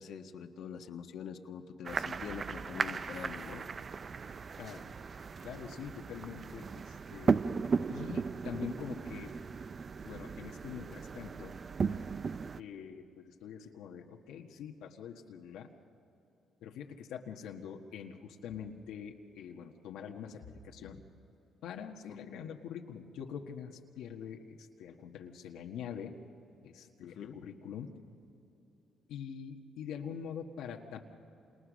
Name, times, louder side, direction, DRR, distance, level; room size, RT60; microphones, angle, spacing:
voice 1, 0.0-3.6 22.1-22.2 27.0-27.4, left 7 dB, 70° left, 5 dB, 1.5 m, -44 dB
sound 1, 1.8-12.6, right 5 dB, 40° right, 0.6 m, -36 dB
voice 2, 5.4-7.4 7.9-9.3 10.0-11.6 11.8-12.0 12.6-15.7 16.6-21.0 21.6-26.2 26.6-28.0 29.1-31.0, left 8 dB, 90° left, 2 dB, 1.6 m, -44 dB
28.5 x 28.0 x 6.4 m, 3.0 s
cardioid pair, 90°, 0 cm